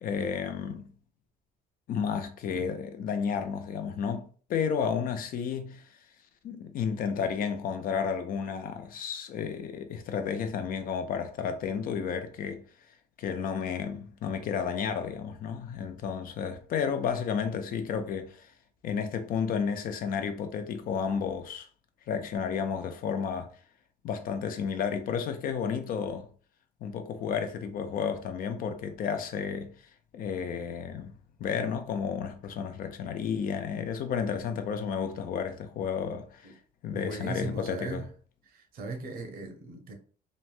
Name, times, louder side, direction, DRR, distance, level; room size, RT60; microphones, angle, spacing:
voice 1, 0.0-0.9 1.9-5.8 6.4-12.6 13.2-18.4 18.8-21.7 22.1-23.5 24.0-26.3 26.8-29.7 30.1-36.4 36.8-38.1, left 6 dB, 60° left, 0.5 m, -32 dB
voice 2, 36.9-38.1 38.5-39.9, right 3 dB, 60° right, 0.7 m, -38 dB
3.0 x 2.2 x 2.4 m
cardioid pair, 110°, 17 cm